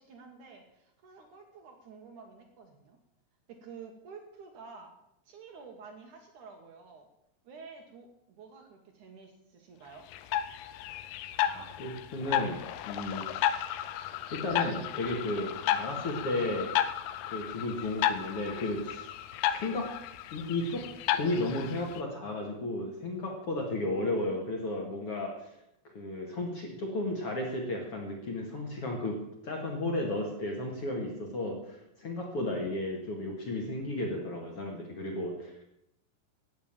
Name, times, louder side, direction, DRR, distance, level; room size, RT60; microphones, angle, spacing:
voice 1, 0.0-3.0 3.5-5.0 5.2-7.1 7.4-10.1, right 5 dB, 80° right, 3 dB, 1.7 m, -50 dB
sound 1, 10.1-22.0, left 11 dB, 80° left, 3.3 m, -33 dB
voice 2, 11.5-13.3 14.3-16.7 17.2-19.1 19.5-19.9 20.3-20.9 21.1-25.5 25.8-29.2 29.4-35.5, left 2 dB, 60° left, 1 dB, 1.5 m, -34 dB
12.5 x 8.9 x 8.9 m, 0.80 s
omnidirectional pair, 6.0 m